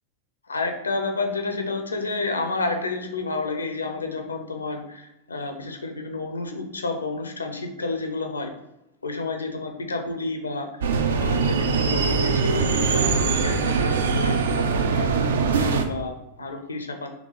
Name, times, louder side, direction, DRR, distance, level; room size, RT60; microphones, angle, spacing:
voice 1, 0.5-8.5 9.0-14.4 14.9-17.1, left 3 dB, 75° left, 5 dB, 0.6 m, -30 dB
sound 1, 10.8-15.8, right 5 dB, 65° right, 0.4 m, -22 dB
3.6 x 2.9 x 4.0 m, 0.89 s
figure-of-eight pair, 90°, 0 cm